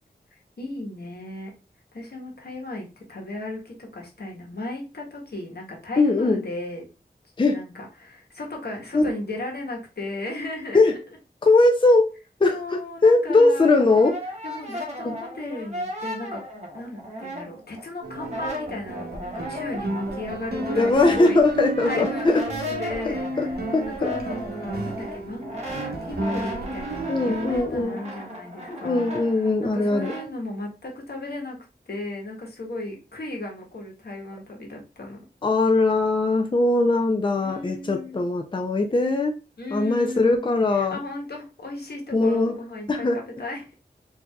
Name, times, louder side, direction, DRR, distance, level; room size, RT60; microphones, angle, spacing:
voice 1, 0.6-1.5 1.9-6.9 7.4-11.0 12.5-13.9 14.4-16.4 16.7-21.4 21.8-31.6 31.9-35.2 37.4-38.2 39.6-40.4 40.7-43.7, left 2 dB, 70° left, 0 dB, 1.2 m, -35 dB
voice 2, 6.0-6.4 7.4-7.6 8.9-9.1 10.7-10.9 11.4-12.1 12.4-14.1 15.0-15.2 20.7-22.4 23.1-23.5 23.7-24.1 27.1-28.0 28.7-30.1 35.4-39.3 39.7-41.0 42.1-42.5 42.9-43.2, left 2 dB, 30° left, 3 dB, 0.5 m, -20 dB
Brass instrument, 13.4-17.8 18.1-30.3, equal, 40° right, 1.2 m, -36 dB
sound 1, 18.0-27.8, right 2 dB, 70° right, 0.9 m, -33 dB
4.4 x 2.7 x 2.3 m, 0.32 s
wide cardioid pair, 75°, 17 cm